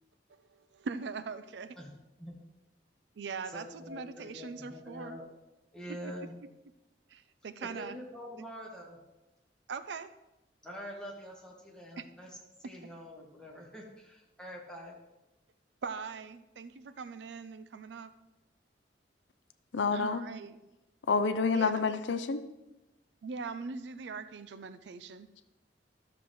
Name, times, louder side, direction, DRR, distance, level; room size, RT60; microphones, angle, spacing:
voice 1, 0.3-1.8 3.2-5.2 5.9-6.0 7.1-8.0 8.4-8.5 9.7-10.1 12.0-12.1 15.8-18.1 19.9-20.6 21.5-21.8 23.2-25.3, right 5 dB, 70° right, 12 dB, 0.4 m, -41 dB
voice 2, 3.4-5.3 5.7-6.3 7.6-9.0 10.6-14.9, equal, 5° left, -3 dB, 1.7 m, -45 dB
voice 3, 19.7-20.2 21.1-22.4, left 4 dB, 90° left, 10 dB, 0.5 m, -28 dB
13.0 x 6.7 x 3.1 m, 0.99 s
head